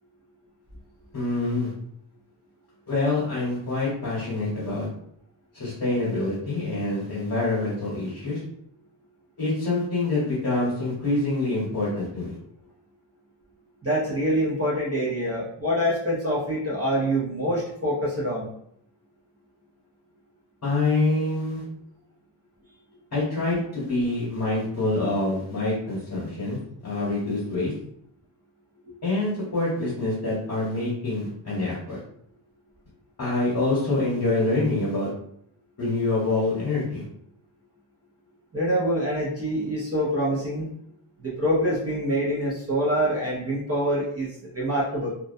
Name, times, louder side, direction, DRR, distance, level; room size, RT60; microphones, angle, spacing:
voice 1, 1.1-1.7 2.9-4.9 5.5-8.4 9.4-12.4 20.6-21.6 23.1-27.7 29.0-32.0 33.2-35.1 35.8-37.0, left 2 dB, 40° left, -7 dB, 1.0 m, -26 dB
voice 2, 13.8-18.5 28.9-29.0 38.5-40.7 41.2-45.1, equal, 30° right, -6 dB, 0.5 m, -25 dB
2.3 x 2.1 x 2.6 m, 0.70 s
wide cardioid pair, 150°, 49 cm